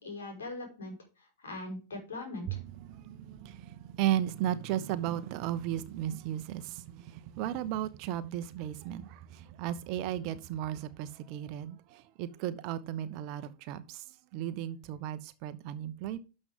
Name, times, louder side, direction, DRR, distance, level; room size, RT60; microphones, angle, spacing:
voice 1, 0.0-2.6, left 2 dB, 65° left, 5.1 m, -41 dB
voice 2, 2.5-14.0 14.3-16.2, right 12 dB, 45° right, 0.9 m, -35 dB
12.0 x 6.5 x 3.7 m
figure-of-eight pair, 90°, 0 cm